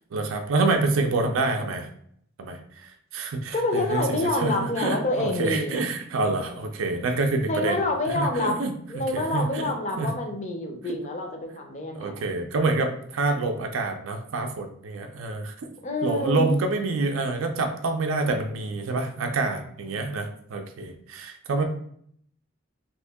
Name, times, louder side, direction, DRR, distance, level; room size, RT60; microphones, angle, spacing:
voice 1, 0.1-1.9 2.4-2.6 3.1-7.8 8.1-8.7 9.1-9.7 10.0-10.1 12.0-15.5 16.0-21.6, right 3 dB, 80° right, 5 dB, 0.4 m, -27 dB
voice 2, 3.5-5.9 7.5-8.6 8.9-12.3 15.8-16.5 21.6-21.7, left 2 dB, 35° left, 3 dB, 0.5 m, -27 dB
2.9 x 2.6 x 3.4 m, 0.66 s
head